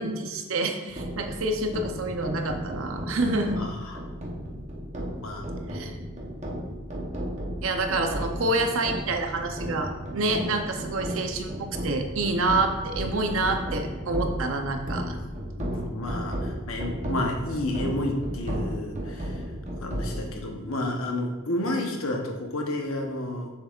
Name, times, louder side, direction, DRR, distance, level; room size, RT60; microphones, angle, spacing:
voice 1, 0.0-3.6 5.7-5.9 7.6-15.2, right 2 dB, 75° right, 5 dB, 0.7 m, -27 dB
sound 1, 0.9-20.3, equal, 35° right, 0.9 m, -34 dB
voice 2, 3.6-4.0 5.2-5.4 15.6-19.4 19.8-23.5, left 1 dB, 80° left, 2 dB, 1.0 m, -31 dB
6.7 x 6.5 x 2.5 m, 1.2 s
head